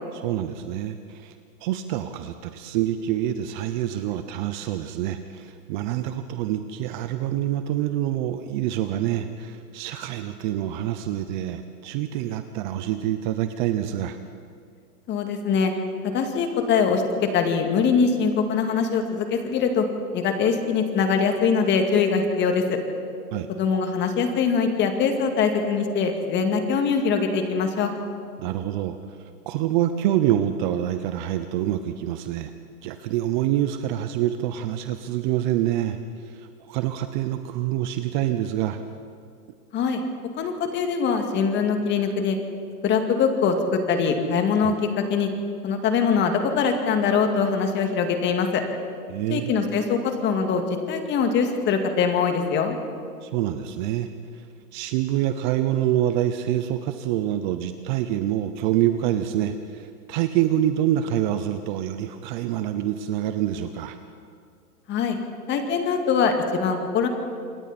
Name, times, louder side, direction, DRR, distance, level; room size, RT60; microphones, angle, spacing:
voice 1, 0.1-1.4 1.6-14.2 23.3-23.5 28.4-32.5 32.8-38.8 44.6-44.7 49.1-49.5 53.2-54.5 54.7-64.0, right 12 dB, 30° right, 10 dB, 0.8 m, -26 dB
voice 2, 15.1-15.7 16.0-19.9 20.1-22.8 23.6-27.9 39.7-40.0 40.4-42.4 42.8-45.3 45.6-48.6 49.3-52.8 64.9-65.2 65.5-67.1, left 5 dB, 25° left, 5 dB, 2.2 m, -23 dB
27.5 x 22.0 x 4.3 m, 2.2 s
hypercardioid pair, 135°, 46 cm